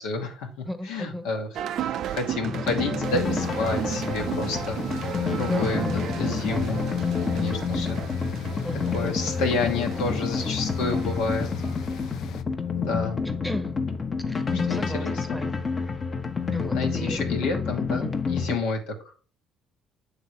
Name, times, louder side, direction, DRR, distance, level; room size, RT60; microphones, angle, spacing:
voice 1, 0.0-5.8 6.1-6.8 7.3-8.0 8.9-11.5 12.7-13.2 14.7-15.4 16.7-19.2, left 3 dB, 90° left, 1.2 m, -30 dB
voice 2, 0.7-1.3 5.3-6.4 8.6-9.4 10.4-10.5 13.2-13.7 14.3-15.6 16.5-17.2 17.9-18.2, equal, 5° right, 0.8 m, -35 dB
sound 1, 1.5-12.2, right 10 dB, 65° right, 0.3 m, -34 dB
sound 2, 2.4-18.6, left 5 dB, 40° left, 0.8 m, -29 dB
sound 3, 3.0-12.4, left 10 dB, 70° left, 0.4 m, -39 dB
7.9 x 3.5 x 4.4 m
supercardioid pair, 80°, 0 cm